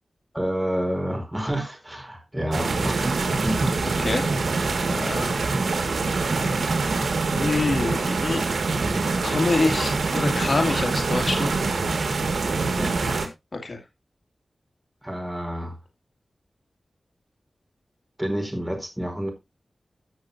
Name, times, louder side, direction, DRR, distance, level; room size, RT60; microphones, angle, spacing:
voice 1, 0.3-3.7 4.9-5.3 9.6-9.9 12.7-13.2 15.0-15.8 18.2-19.3, equal, 10° right, 4.9 m, -29 dB
sound 1, 2.5-13.3, right 3 dB, 85° right, 1.8 m, -25 dB
voice 2, 4.8-5.5 7.3-8.4 9.2-11.6 13.5-13.8, left 3 dB, 55° left, 2.2 m, -26 dB
15.5 x 6.5 x 2.7 m
wide cardioid pair, 60°, 0 cm